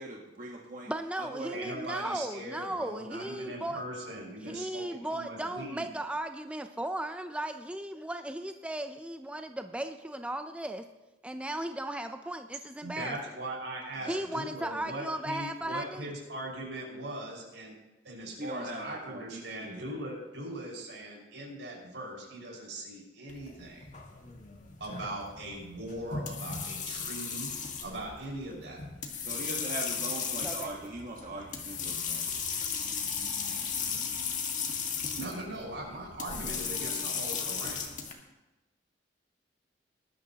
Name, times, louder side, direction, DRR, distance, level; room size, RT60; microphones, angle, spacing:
voice 1, 0.0-0.9 1.2-1.6 14.0-14.2 18.4-19.9 29.2-32.3, right 2 dB, 50° right, -1 dB, 1.4 m, -41 dB
voice 2, 0.9-3.8 4.4-10.9 11.2-13.2 14.1-16.1 30.4-30.7, right 1 dB, 5° right, 7 dB, 0.5 m, -36 dB
voice 3, 1.5-5.9 12.8-17.7 18.0-23.9 24.8-27.5 27.8-28.9 35.2-37.8, right 1 dB, 85° right, -2 dB, 5.4 m, -40 dB
sound 1, 23.3-38.1, left 6 dB, 45° left, 1.8 m, -36 dB
19.5 x 12.0 x 2.9 m, 1.1 s
head